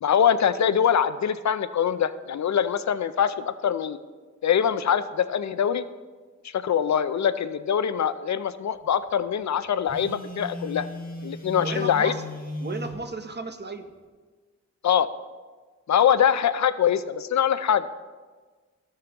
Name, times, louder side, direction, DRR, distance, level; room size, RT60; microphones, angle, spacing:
voice 1, 0.0-4.0 4.4-5.8 6.5-10.9 11.2-12.1 14.8-15.1 15.9-17.9, left 8 dB, 70° left, 13 dB, 0.5 m, -23 dB
Telephone, 9.9-13.0, left 2 dB, 30° left, 1.4 m, -35 dB
voice 2, 11.6-12.3 12.6-13.9 16.0-16.1, right 3 dB, 35° right, 7 dB, 0.8 m, -34 dB
14.5 x 6.6 x 3.0 m, 1.4 s
wide cardioid pair, 85°, 29 cm